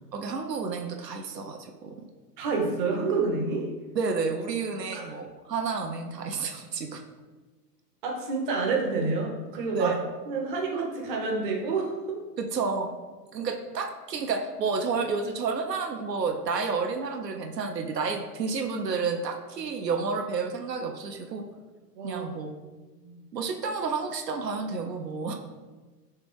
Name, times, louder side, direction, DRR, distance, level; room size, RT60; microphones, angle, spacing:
voice 1, 0.1-2.0 4.0-7.0 9.7-10.0 12.4-12.9 13.3-21.4 22.0-22.5 23.3-25.3, right 4 dB, 80° right, 4 dB, 0.6 m, -30 dB
voice 2, 2.4-3.7 4.9-5.1 8.0-10.0 10.3-12.2 22.0-22.3 23.0-23.2, right 4 dB, 35° right, 0 dB, 0.6 m, -28 dB
3.3 x 3.1 x 3.3 m, 1.3 s
figure-of-eight pair, 105°, 48 cm